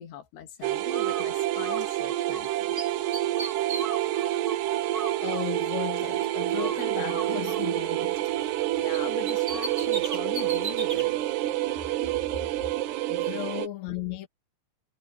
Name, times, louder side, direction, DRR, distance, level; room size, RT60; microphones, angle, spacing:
voice 1, 0.0-2.7 8.8-11.2, left 9 dB, 80° left, 4.7 m, -41 dB
sound 1, 0.6-13.7, right 15 dB, 85° right, 3.1 m, -28 dB
Bird, 0.9-2.5 2.8-6.2 6.5-8.6 8.9-11.1, right 3 dB, 25° right, 2.8 m, -38 dB
voice 2, 5.2-8.3 13.1-14.3, left 13 dB, 50° left, 3.1 m, -35 dB
omnidirectional pair, 4.7 m